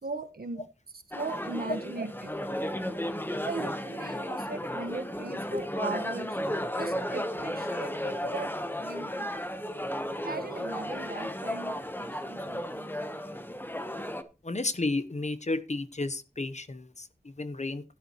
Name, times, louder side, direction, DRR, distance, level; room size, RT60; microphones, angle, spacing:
voice 1, 0.0-0.6 1.1-2.3 3.3-6.3 6.8-8.5 8.8-9.3 10.2-12.9, right 3 dB, 85° right, 1.4 m, -39 dB
sound 1, 1.1-14.2, equal, 15° left, 1.1 m, -34 dB
voice 2, 14.4-17.8, left 2 dB, 50° left, 1.0 m, -32 dB
12.0 x 10.0 x 3.1 m
wide cardioid pair, 55°, 15 cm